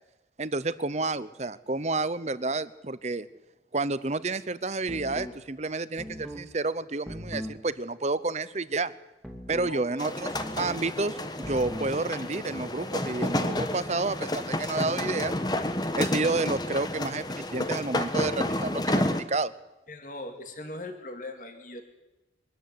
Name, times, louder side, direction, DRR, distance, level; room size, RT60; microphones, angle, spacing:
voice 1, 0.4-3.3 3.7-8.9 9.5-15.3 15.9-17.2 17.5-19.5, right 3 dB, 40° right, 16 dB, 0.8 m, -30 dB
sound 1, 4.9-5.4 6.0-6.4 7.1-7.6 9.2-9.8 10.3-10.8 11.4-11.9, equal, ahead, 2.6 m, -39 dB
voice 2, 9.5-10.0 19.9-21.8, left 1 dB, 45° left, 5 dB, 2.4 m, -40 dB
sound 2, 10.0-19.2, left 1 dB, 20° left, 1.3 m, -30 dB
23.5 x 13.0 x 9.6 m, 1.0 s
head